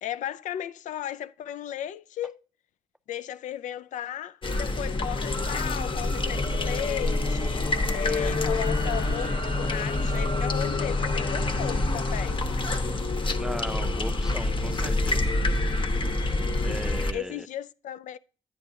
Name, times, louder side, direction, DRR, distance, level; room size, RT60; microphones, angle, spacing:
voice 1, 0.0-2.4 3.1-12.5 17.1-18.2, left 11 dB, 85° left, 0.4 m, -35 dB
sound 1, 4.4-17.1, left 2 dB, 45° left, 0.9 m, -26 dB
voice 2, 13.4-15.3 16.6-17.5, equal, 5° right, 0.5 m, -37 dB
10.0 x 8.4 x 2.7 m
cardioid pair, 65°, 12 cm